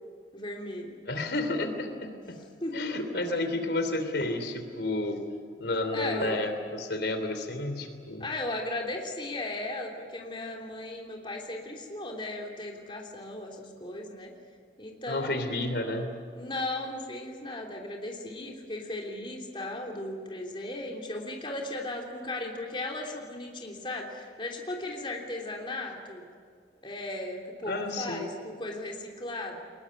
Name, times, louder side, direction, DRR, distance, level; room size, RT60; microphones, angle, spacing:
voice 1, 0.3-1.0 2.6-2.8 5.9-6.4 8.2-14.3 14.8-15.3 16.3-26.2 26.8-29.6, left 2 dB, 30° left, 1 dB, 3.2 m, -36 dB
voice 2, 1.1-2.4 2.7-5.2 5.6-8.2 15.1-16.2 27.7-28.3, left 2 dB, 70° left, 7 dB, 3.1 m, -31 dB
23.0 x 21.0 x 9.8 m, 2.1 s
head